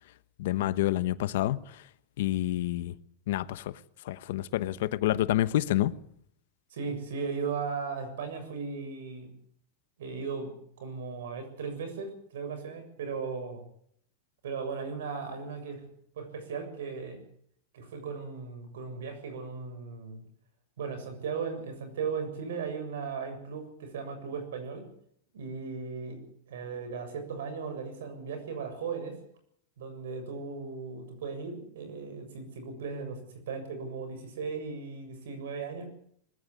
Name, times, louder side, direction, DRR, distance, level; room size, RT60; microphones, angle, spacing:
voice 1, 0.4-1.8 2.2-2.9 3.3-3.7 4.0-5.9, left 14 dB, 70° left, 1.1 m, -28 dB
voice 2, 6.7-9.3 10.0-13.6 14.4-15.8 16.2-17.2 17.7-20.2 20.8-24.9 25.3-29.2 29.8-33.2 33.5-35.9, right 5 dB, 90° right, 7.1 m, -37 dB
20.5 x 14.5 x 9.8 m
supercardioid pair, 150°, 0 cm